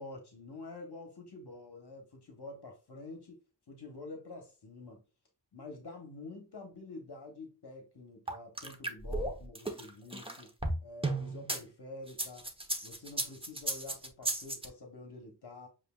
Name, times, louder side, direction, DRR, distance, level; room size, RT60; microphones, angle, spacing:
voice 1, 0.0-3.4 3.7-5.0 5.5-10.5 10.8-12.5 12.8-15.7, left 2 dB, 60° left, 1.1 m, -47 dB
sound 1, 8.3-11.6 12.1-14.7, right 2 dB, 10° right, 0.9 m, -34 dB
7.5 x 2.6 x 2.3 m
wide cardioid pair, 80°, 44 cm